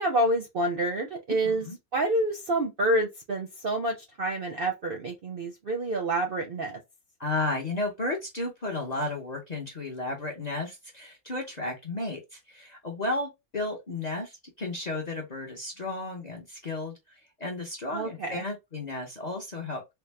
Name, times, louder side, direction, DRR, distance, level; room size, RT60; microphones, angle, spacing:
voice 1, 0.0-6.8 17.9-18.4, right 1 dB, 55° right, 0.6 m, -28 dB
voice 2, 1.4-1.8 7.2-19.8, left 2 dB, 40° left, 0.6 m, -33 dB
3.4 x 2.1 x 3.2 m
omnidirectional pair, 1.6 m